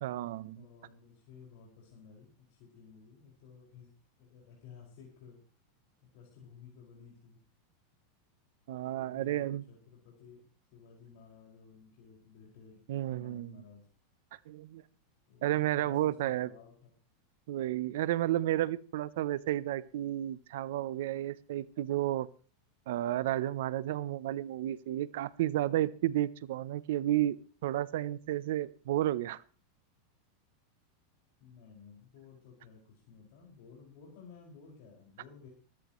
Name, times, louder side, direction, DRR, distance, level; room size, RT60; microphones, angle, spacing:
voice 1, 0.0-0.6 8.7-9.6 12.9-13.5 14.5-14.8 15.4-16.5 17.5-22.3 22.9-27.4 27.6-29.4, right 13 dB, 70° right, 19 dB, 0.7 m, -32 dB
voice 2, 0.6-3.9 4.2-5.4 6.1-7.4 8.9-12.8 13.1-13.9 15.3-16.9 31.4-35.5, left 6 dB, 60° left, -3 dB, 5.6 m, -55 dB
21.5 x 13.5 x 3.1 m, 0.40 s
supercardioid pair, 145°, 0 cm